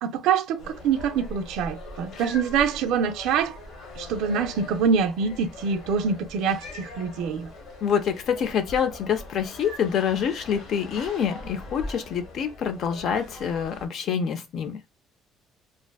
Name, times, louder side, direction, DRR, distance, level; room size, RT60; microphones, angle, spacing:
voice 1, 0.0-3.6 4.0-7.5, right 6 dB, 85° right, 0.3 m, -25 dB
sound 1, 0.6-13.9, left 1 dB, 75° left, 0.9 m, -41 dB
voice 2, 7.8-14.8, left 7 dB, 55° left, 0.3 m, -26 dB
2.5 x 2.3 x 2.2 m
cardioid pair, 135°, 0 cm